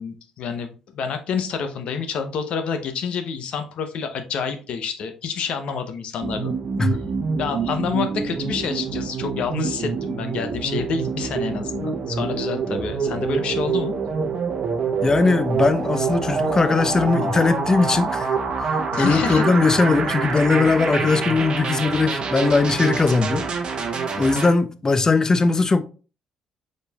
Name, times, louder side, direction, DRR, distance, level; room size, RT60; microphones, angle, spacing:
voice 1, 0.0-6.5 7.4-13.9 18.9-19.4, left 6 dB, 65° left, 0.8 m, -28 dB
sound 1, 6.2-24.5, right 5 dB, 50° right, 0.9 m, -26 dB
voice 2, 15.0-18.3 18.6-23.5 24.2-25.8, left 3 dB, 30° left, 0.6 m, -19 dB
5.1 x 4.3 x 2.4 m
supercardioid pair, 60°, 2 cm